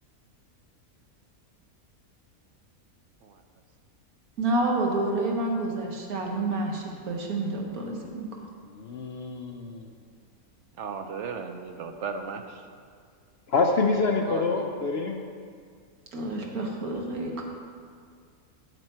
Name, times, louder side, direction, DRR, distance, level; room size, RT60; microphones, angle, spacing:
voice 1, 4.4-8.3 16.1-17.4, right 2 dB, 80° right, 0 dB, 1.8 m, -29 dB
voice 2, 8.7-9.9 13.5-15.2, left 4 dB, 60° left, 2 dB, 0.6 m, -26 dB
voice 3, 10.8-12.6 14.3-14.7, right 5 dB, 65° right, 6 dB, 0.8 m, -35 dB
9.1 x 7.6 x 4.5 m, 2.1 s
omnidirectional pair, 1.5 m